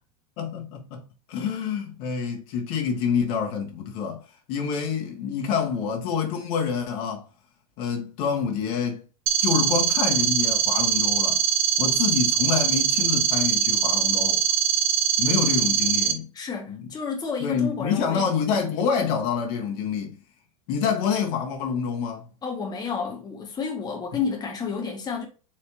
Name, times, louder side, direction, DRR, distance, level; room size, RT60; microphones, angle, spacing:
voice 1, 0.4-4.2 4.5-7.3 7.8-9.0 9.4-11.4 11.8-14.4 15.2-16.3 16.7-16.8 17.4-20.2 20.7-22.3, left 6 dB, 55° left, 1.4 m, -27 dB
sound 1, 9.3-16.1, right 9 dB, 65° right, 0.9 m, -22 dB
voice 2, 16.3-18.7 22.4-25.3, left 5 dB, 20° left, 1.2 m, -31 dB
4.5 x 3.2 x 3.0 m
hypercardioid pair, 100°, 19 cm